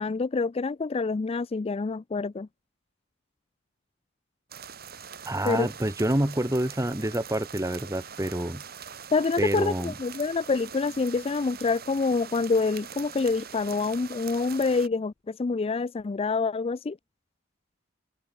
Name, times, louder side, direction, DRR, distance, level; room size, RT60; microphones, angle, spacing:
voice 1, 0.0-2.5 5.4-5.7 9.1-17.0, left 4 dB, 30° left, 0.4 m, -27 dB
sound 1, 4.5-14.9, right 7 dB, 50° right, 4.7 m, -43 dB
voice 2, 5.3-8.6 9.4-9.9, right 1 dB, 15° right, 1.7 m, -27 dB
head